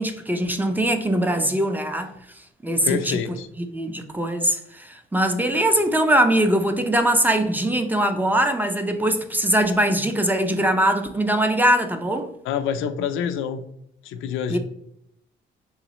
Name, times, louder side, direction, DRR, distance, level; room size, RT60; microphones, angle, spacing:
voice 1, 0.0-2.1 2.6-3.2 3.6-12.3 14.5-14.6, right 1 dB, 10° right, 0.5 m, -21 dB
voice 2, 2.8-3.5 12.4-13.6 14.0-14.6, left 7 dB, 85° left, 0.4 m, -27 dB
3.8 x 3.0 x 2.9 m
cardioid pair, 90°, 20 cm